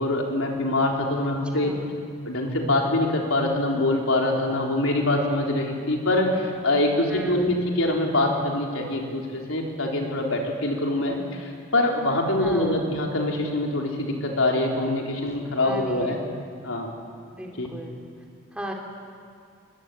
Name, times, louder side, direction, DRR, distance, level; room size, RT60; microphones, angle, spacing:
voice 1, 0.0-1.7 2.3-16.2 16.6-16.9 17.6-17.7, left 1 dB, 80° left, 0 dB, 4.1 m, -24 dB
voice 2, 1.5-1.9 7.1-7.5 12.4-12.9 15.6-16.4 17.3-18.1 18.5-18.7, equal, 5° right, 0 dB, 2.8 m, -37 dB
23.0 x 21.0 x 9.3 m, 2.2 s
head